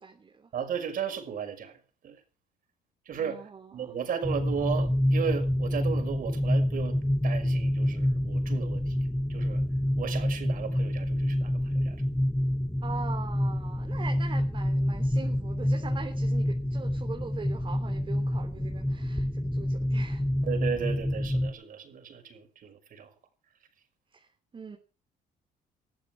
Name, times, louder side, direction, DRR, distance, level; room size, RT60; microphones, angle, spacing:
voice 1, 0.0-0.5 3.2-4.0 12.8-20.2 24.1-24.8, right 5 dB, 30° right, 3.3 m, -42 dB
voice 2, 0.5-2.2 3.1-7.0 7.2-9.0 9.3-9.6 10.0-12.0 20.4-23.1, right 7 dB, 55° right, 5.8 m, -35 dB
sound 1, 4.2-21.5, left 1 dB, 5° left, 2.0 m, -28 dB
20.5 x 14.5 x 4.8 m
cardioid pair, 110°, 17 cm